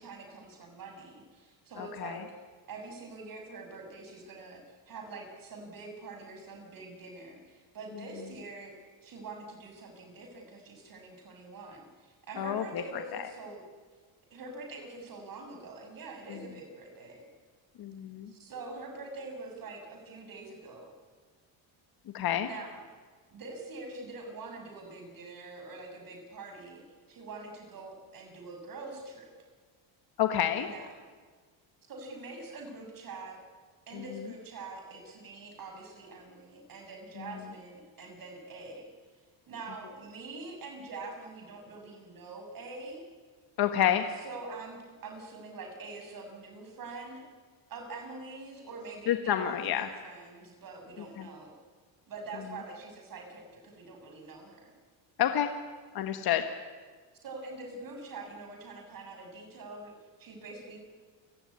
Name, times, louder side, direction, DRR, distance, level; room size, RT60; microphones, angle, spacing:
voice 1, 0.0-2.2 2.7-8.8 9.0-13.6 14.3-17.2 18.3-20.9 22.4-22.8 23.3-29.3 30.6-30.9 31.9-33.4 33.9-38.9 39.5-43.0 44.2-47.2 47.7-51.5 52.1-54.7 57.2-60.8, right 3 dB, 45° right, 4 dB, 6.9 m, -44 dB
voice 2, 1.8-2.2 12.4-13.3 16.3-16.4 17.8-18.3 22.1-22.5 30.2-30.7 33.9-34.0 37.2-37.3 43.6-44.0 49.1-49.9 51.2-51.3 55.2-55.5 55.9-56.4, left 10 dB, 55° left, 7 dB, 1.5 m, -29 dB
29.5 x 17.5 x 9.8 m, 1.5 s
cardioid pair, 140°, 46 cm